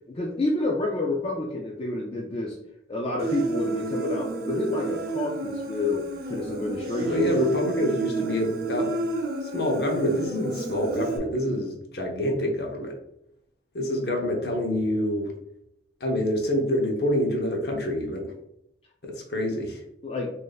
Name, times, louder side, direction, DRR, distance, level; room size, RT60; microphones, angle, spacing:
voice 1, 0.1-2.6 2.9-6.0 6.3-7.5 20.0-20.3, left 2 dB, 30° left, -1 dB, 0.4 m, -29 dB
Human voice, 3.2-11.2, right 3 dB, 55° right, 0.6 m, -30 dB
voice 2, 7.0-8.9 9.5-13.0 13.7-15.3 16.0-18.3 19.0-19.8, left 1 dB, 60° left, 1 dB, 0.8 m, -26 dB
3.0 x 2.6 x 4.0 m, 0.79 s
head